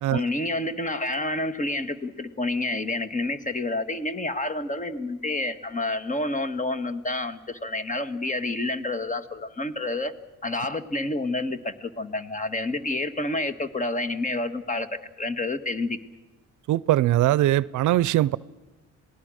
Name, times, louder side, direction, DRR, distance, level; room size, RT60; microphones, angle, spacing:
voice 1, 0.1-10.1 10.4-14.9 15.2-16.0, left 2 dB, 25° left, 1.6 m, -29 dB
voice 2, 16.7-18.4, right 14 dB, 75° right, 0.6 m, -21 dB
27.0 x 19.0 x 6.4 m
cardioid pair, 90°, 30 cm